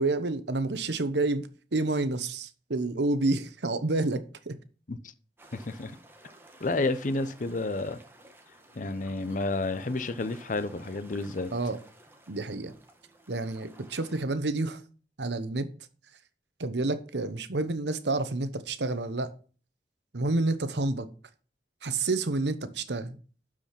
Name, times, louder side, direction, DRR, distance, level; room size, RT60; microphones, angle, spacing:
voice 1, 0.0-4.6 11.5-11.8 12.3-12.7 13.3-14.8 15.2-15.7 16.6-19.3 20.1-21.1 21.8-23.2, right 2 dB, 75° right, 1.0 m, -29 dB
sound 1, 5.4-14.2, right 1 dB, 15° right, 1.3 m, -54 dB
voice 2, 5.5-6.0 6.6-8.0 8.8-11.5, left 2 dB, 45° left, 0.7 m, -30 dB
12.0 x 5.0 x 5.8 m
head